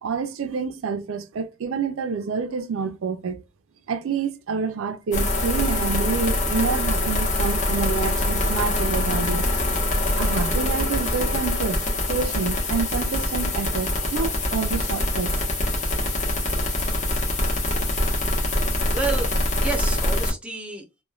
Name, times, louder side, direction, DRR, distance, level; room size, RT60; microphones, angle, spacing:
voice 1, 0.0-3.4 3.9-9.5 10.2-11.8 12.1-15.4, right 5 dB, 85° right, 0.4 m, -28 dB
sound 1, 5.1-20.3, left 1 dB, 35° left, 0.8 m, -24 dB
voice 2, 18.9-21.0, right 3 dB, 5° right, 0.5 m, -30 dB
3.0 x 2.1 x 2.3 m
head